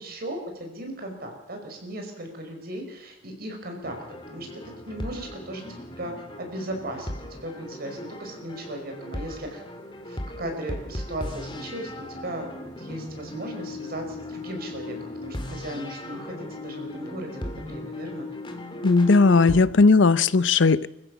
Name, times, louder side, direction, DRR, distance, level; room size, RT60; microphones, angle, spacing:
voice 1, 0.0-4.0 4.3-5.6 6.0-6.1 6.4-9.6 10.1-18.3, right 1 dB, 55° right, 3 dB, 5.3 m, -36 dB
sound 1, 3.8-19.6, left 1 dB, 25° left, 2.4 m, -37 dB
voice 2, 18.8-20.9, left 4 dB, 80° left, 17 dB, 0.7 m, -17 dB
25.0 x 15.0 x 7.1 m, 0.92 s
head